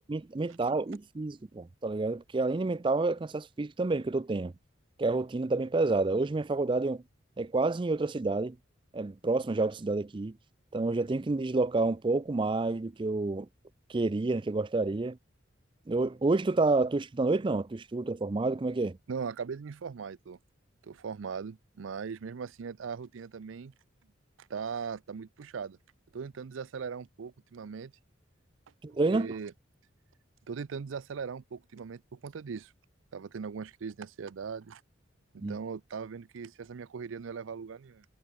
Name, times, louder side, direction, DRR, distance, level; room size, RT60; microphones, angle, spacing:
voice 1, 0.1-4.5 5.0-7.0 7.4-8.6 8.9-10.4 10.7-13.5 13.9-15.2 15.9-19.0 28.8-29.4 35.4-35.6, right 3 dB, 25° right, 0.4 m, -29 dB
voice 2, 19.1-20.4 20.8-23.7 24.4-25.8 26.1-27.9 29.1-29.5 30.5-32.7 33.1-34.8 35.5-38.0, right 6 dB, 80° right, 0.5 m, -39 dB
head